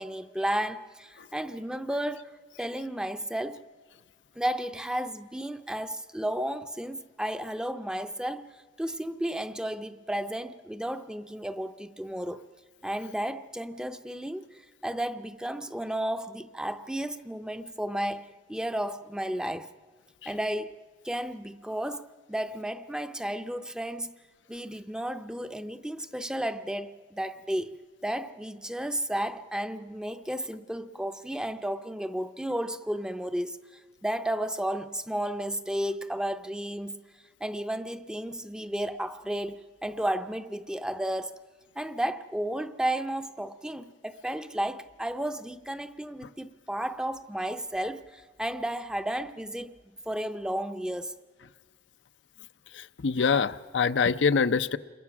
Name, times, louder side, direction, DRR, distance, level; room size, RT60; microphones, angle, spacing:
voice 1, 0.0-3.6 4.4-8.5 8.8-12.4 12.8-14.5 14.8-19.7 20.3-20.7 21.0-24.1 24.5-27.7 28.0-33.6 34.0-37.0 37.4-41.3 41.8-49.7 50.1-51.2, right 1 dB, 5° right, 0.6 m, -33 dB
voice 2, 52.7-54.8, left 5 dB, 80° left, 0.6 m, -25 dB
28.0 x 22.5 x 6.0 m
head